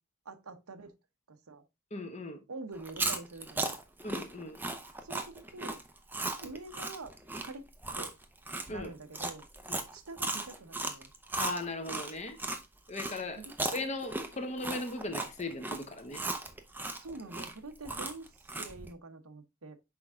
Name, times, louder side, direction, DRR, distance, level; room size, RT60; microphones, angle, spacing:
voice 1, 0.2-0.9 1.3-1.6 2.5-3.7 5.0-5.8 6.4-7.1 7.4-7.7 7.9-8.1 8.7-9.4 9.9-11.1 13.4-13.5 17.0-19.8, right 3 dB, 85° right, 0.9 m, -46 dB
voice 2, 1.9-2.4 4.0-4.6 8.7-8.9 9.7-9.8 11.3-12.4 12.9-13.4 13.7-16.2, left 2 dB, 30° left, 1.0 m, -38 dB
Chewing mastication, 2.8-12.6 13.0-18.9, right 2 dB, 10° right, 0.6 m, -36 dB
6.0 x 4.6 x 3.6 m
head